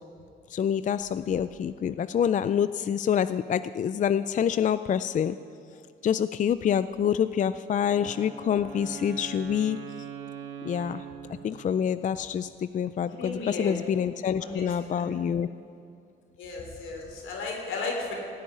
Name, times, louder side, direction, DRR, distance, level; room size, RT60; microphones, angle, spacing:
voice 1, 0.5-5.4 6.0-9.8 10.6-11.0 11.4-15.5, left 8 dB, 40° left, 14 dB, 0.4 m, -26 dB
Wind instrument woodwind instrument, 7.8-12.0, right 7 dB, 60° right, 2.6 m, -42 dB
voice 2, 13.2-13.7 14.4-15.1 16.4-18.1, left 3 dB, 80° left, 0 dB, 3.5 m, -35 dB
17.0 x 7.1 x 9.9 m, 2.6 s
cardioid pair, 90°, 20 cm